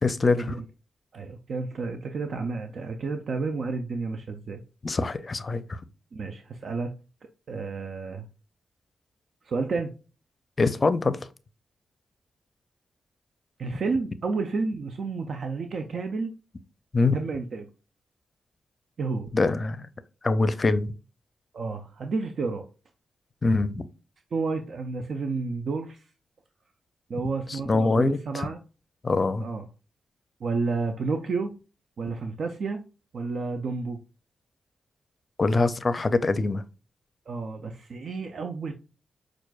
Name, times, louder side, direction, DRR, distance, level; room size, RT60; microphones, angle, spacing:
voice 1, 0.0-0.5 4.8-5.8 10.6-11.2 16.9-17.2 19.3-19.9 20.2-20.9 23.4-23.9 27.7-28.5 29.0-29.4 35.4-36.6, left 3 dB, 40° left, 0.5 m, -24 dB
voice 2, 1.1-4.6 6.1-6.9 7.5-8.3 9.4-9.9 13.6-16.3 17.1-17.7 19.0-19.3 21.5-22.7 24.3-26.0 27.1-28.6 29.4-29.6 30.4-31.5 32.0-32.8 33.1-34.0 37.3-38.7, right 4 dB, 65° right, 0.4 m, -31 dB
5.9 x 2.5 x 2.3 m
supercardioid pair, 50°, 0 cm